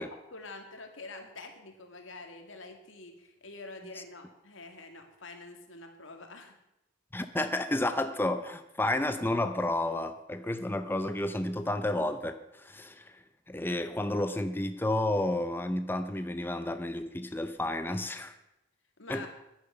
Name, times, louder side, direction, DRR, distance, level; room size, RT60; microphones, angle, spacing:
voice 1, 0.0-6.5 19.0-19.3, left 3 dB, 80° left, 5 dB, 2.2 m, -46 dB
voice 2, 7.1-13.1 13.5-18.3 19.1-19.3, left 1 dB, 10° left, 9 dB, 0.6 m, -31 dB
10.5 x 10.5 x 7.0 m, 0.89 s
head